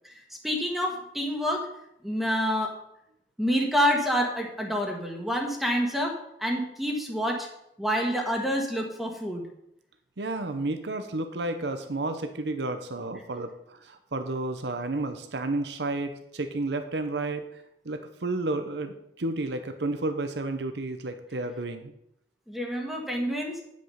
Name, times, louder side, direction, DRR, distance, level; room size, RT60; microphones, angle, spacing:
voice 1, 0.4-1.6 2.0-2.7 3.4-7.5 7.8-9.4 22.5-23.6, equal, ahead, 0 dB, 1.4 m, -27 dB
voice 2, 10.2-21.9, right 2 dB, 75° right, 8 dB, 0.8 m, -31 dB
10.0 x 6.3 x 5.7 m, 0.78 s
head